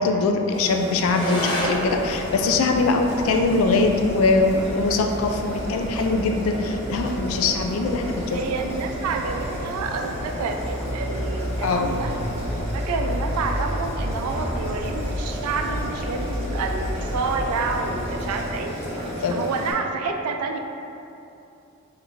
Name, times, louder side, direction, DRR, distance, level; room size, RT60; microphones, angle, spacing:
voice 1, 0.0-8.4 11.6-11.9 19.2-19.4, left 3 dB, 65° left, 3 dB, 0.3 m, -22 dB
Boiling, 0.5-19.7, equal, 25° right, 1.1 m, -33 dB
sound 1, 1.0-10.0, equal, 20° left, 0.7 m, -35 dB
sound 2, 1.4-18.7, equal, 85° left, 0.7 m, -32 dB
voice 2, 8.3-12.1 12.7-18.8 19.2-20.6, right 4 dB, 80° right, 5 dB, 0.3 m, -29 dB
4.3 x 2.5 x 2.7 m, 2.7 s
head